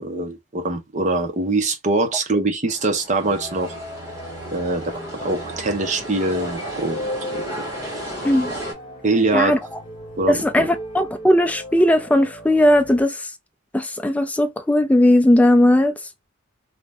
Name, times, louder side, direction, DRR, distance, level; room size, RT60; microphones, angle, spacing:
voice 1, 0.0-3.8 4.5-7.0 7.3-7.6 9.0-9.5 10.2-10.7, right 2 dB, 35° right, 0.6 m, -23 dB
sound 1, 2.7-8.7, right 1 dB, 15° right, 1.2 m, -33 dB
sound 2, 3.2-13.0, left 1 dB, 25° left, 0.8 m, -37 dB
voice 2, 10.3-13.3 13.7-15.9, left 1 dB, 5° left, 0.3 m, -17 dB
2.6 x 2.0 x 3.3 m
head